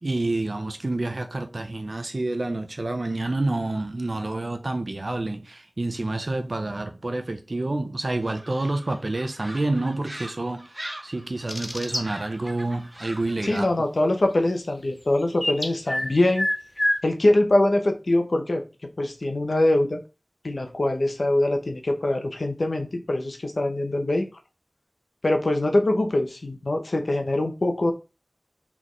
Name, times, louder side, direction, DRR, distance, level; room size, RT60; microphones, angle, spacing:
voice 1, 0.0-13.7, right 2 dB, 65° right, 0.8 m, -28 dB
sound 1, 8.2-13.5, right 1 dB, 20° right, 1.0 m, -42 dB
sound 2, 11.5-12.0 15.4-16.1 16.4-17.0, left 1 dB, 30° left, 0.7 m, -25 dB
voice 2, 13.4-16.5 17.0-18.6 19.0-20.0 20.4-24.3 25.2-27.9, left 1 dB, 80° left, 0.8 m, -23 dB
4.2 x 3.6 x 3.1 m
wide cardioid pair, 40°, 0 cm